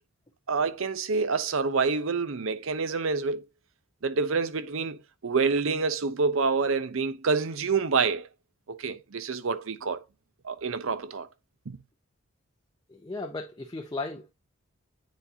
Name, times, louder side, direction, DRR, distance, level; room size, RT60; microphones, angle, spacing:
voice 1, 0.5-3.4 4.0-8.3 8.7-10.0 10.4-11.3 11.7-11.8, right 4 dB, 65° right, 0.6 m, -27 dB
voice 2, 12.9-14.3, left 3 dB, 20° left, 0.5 m, -36 dB
9.2 x 4.2 x 2.7 m
head